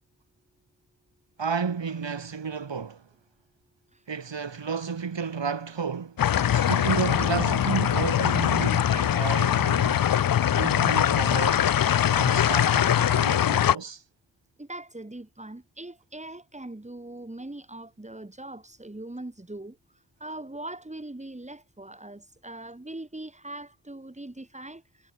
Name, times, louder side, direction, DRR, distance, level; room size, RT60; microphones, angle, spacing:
voice 1, 1.4-3.0 4.1-10.1 10.5-11.7 12.1-14.0, right 5 dB, 70° right, 5.1 m, -32 dB
sound 1, 6.2-13.8, left 10 dB, 50° left, 0.5 m, -22 dB
voice 2, 14.6-19.8 20.2-24.8, right 2 dB, 15° right, 3.5 m, -41 dB
wide cardioid pair, 115°, 46 cm